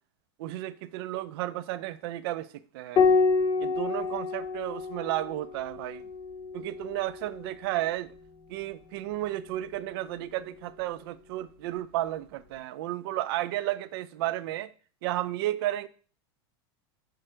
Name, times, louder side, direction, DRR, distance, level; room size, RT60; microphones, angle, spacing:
voice 1, 0.4-3.0 3.6-6.0 6.5-8.1 8.5-14.7 15.0-15.9, right 15 dB, 65° right, 0.4 m, -33 dB
Piano, 3.0-7.8 9.4-10.3, left 4 dB, 30° left, 0.8 m, -28 dB
5.1 x 4.5 x 4.4 m
supercardioid pair, 130°, 14 cm